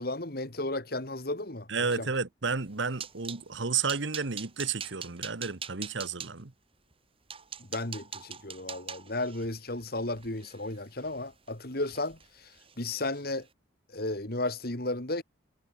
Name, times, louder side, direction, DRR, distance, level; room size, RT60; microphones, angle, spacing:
voice 1, 0.0-1.7 2.0-2.1 7.7-12.5 12.8-13.5 13.9-15.2, left 2 dB, 50° left, 2.4 m, -34 dB
voice 2, 1.7-6.5, right 5 dB, 70° right, 1.3 m, -32 dB
sound 1, 2.5-3.4 3.9-6.3 6.9-7.0 7.3-11.5 11.8-12.3 12.5-12.7 13.1-13.3, right 7 dB, 30° right, 5.4 m, -43 dB
head